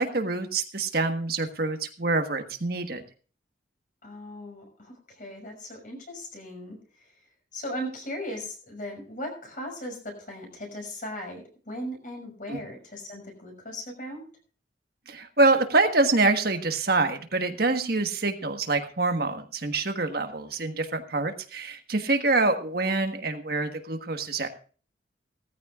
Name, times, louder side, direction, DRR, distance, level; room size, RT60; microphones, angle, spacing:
voice 1, 0.0-3.0 12.5-12.6 15.1-24.5, right 3 dB, 50° right, 6 dB, 1.4 m, -26 dB
voice 2, 4.0-7.1 7.5-14.2, equal, 45° left, 3 dB, 6.1 m, -38 dB
18.5 x 14.5 x 2.4 m, 0.40 s
head